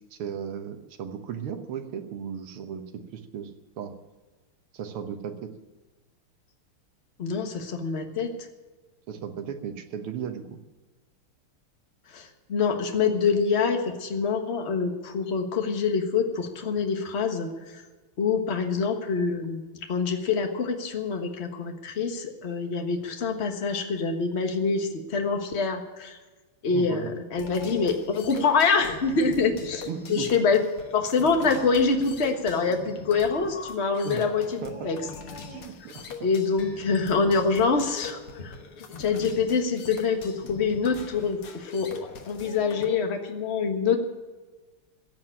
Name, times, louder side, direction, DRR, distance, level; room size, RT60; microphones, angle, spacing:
voice 1, 0.1-3.5 3.8-4.0 4.7-5.5 9.1-10.6 26.7-27.1 29.9-30.3 34.0-34.3 34.6-34.9 35.5-36.3, right 8 dB, 85° right, 7 dB, 2.0 m, -36 dB
voice 2, 7.2-8.5 12.1-17.8 18.2-19.6 19.9-26.2 26.6-30.6 30.9-35.0 36.2-38.5 39.0-41.9 42.2-44.0, left 5 dB, 35° left, 4 dB, 1.5 m, -25 dB
sound 1, 27.4-42.9, left 4 dB, 80° left, 2.3 m, -42 dB
15.0 x 7.7 x 9.8 m, 1.3 s
omnidirectional pair, 2.4 m